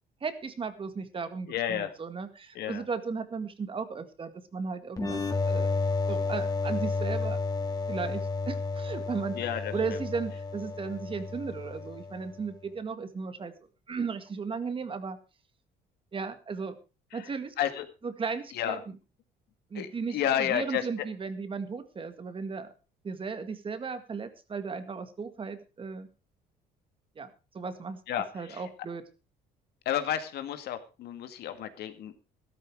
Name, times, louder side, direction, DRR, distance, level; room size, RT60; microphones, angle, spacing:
voice 1, 0.2-5.7 6.1-7.4 7.9-9.5 9.7-13.5 13.9-15.2 16.1-16.8 17.1-17.5 18.0-18.8 19.7-22.7 23.0-26.1 27.2-27.3 27.5-28.0 28.3-29.0, right 5 dB, 30° right, 11 dB, 1.9 m, -35 dB
voice 2, 1.5-1.9 2.5-2.8 9.3-10.0 17.1-17.3 17.6-17.9 18.5-18.8 19.7-21.1 28.1-28.7 29.9-32.2, left 10 dB, 70° left, 9 dB, 2.1 m, -32 dB
sound 1, 5.0-12.4, left 3 dB, 20° left, 3.1 m, -31 dB
13.0 x 13.0 x 4.7 m, 0.31 s
cardioid pair, 110°, 17 cm